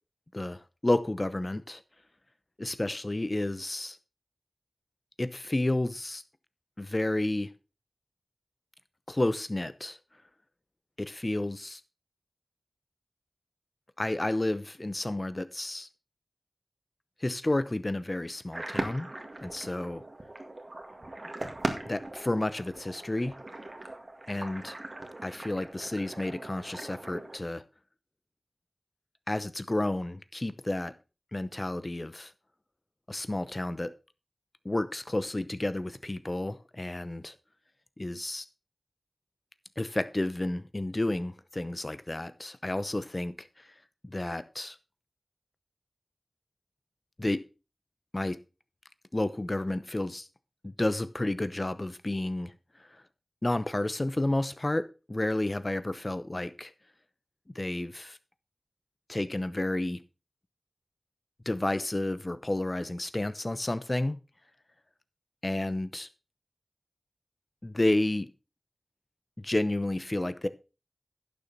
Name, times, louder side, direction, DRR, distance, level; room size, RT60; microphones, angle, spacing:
voice 1, 0.3-1.8 2.6-4.0 5.2-6.2 6.8-7.5 9.1-10.0 11.0-11.8 14.0-15.9 17.2-19.1 19.4-20.0 21.9-23.3 24.3-24.7 25.2-27.6 29.3-30.9 31.3-32.3 33.1-33.9 34.6-37.3 38.0-38.4 39.8-43.5 44.0-44.8 47.2-47.4 48.1-48.4 49.1-50.3 50.6-52.5 53.4-56.7 57.5-58.2 59.1-60.0 61.5-64.2 65.4-66.1 67.6-68.3 69.4-70.5, left 1 dB, 35° left, 14 dB, 0.8 m, -31 dB
sound 1, 18.5-27.4, right 2 dB, 45° right, 1.9 m, -39 dB
11.5 x 7.1 x 4.1 m, 0.31 s
wide cardioid pair, 55°, 0 cm